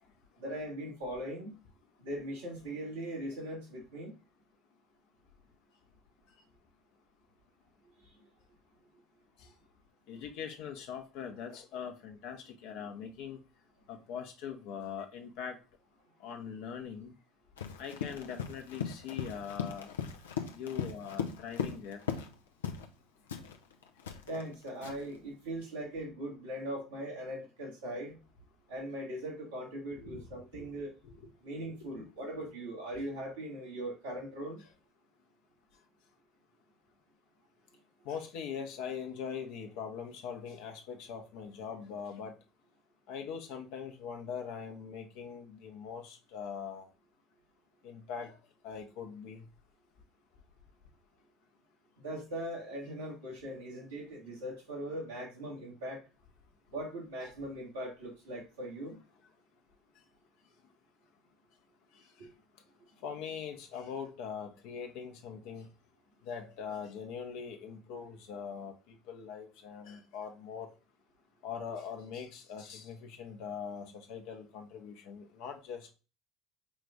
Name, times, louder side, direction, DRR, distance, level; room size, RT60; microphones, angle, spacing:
voice 1, 0.4-1.6 2.0-4.2 24.3-28.2 28.7-30.9 31.4-34.6 52.0-56.0 56.7-59.0 62.2-62.3, right 1 dB, 85° right, 1.7 m, -40 dB
voice 2, 10.1-13.4 13.9-15.6 16.2-17.1 17.8-19.9 20.5-22.0 30.0-30.3 30.5-30.7 31.0-31.3 34.6-34.7 38.0-42.4 43.1-46.9 47.8-48.4 48.6-49.4 63.0-65.7 66.2-70.7 71.4-75.9, left 7 dB, 65° left, 0.9 m, -42 dB
Run, 17.6-22.3 22.6-22.9 23.3-25.2, left 7 dB, 85° left, 0.5 m, -38 dB
5.1 x 2.5 x 3.3 m
hypercardioid pair, 65°, 0 cm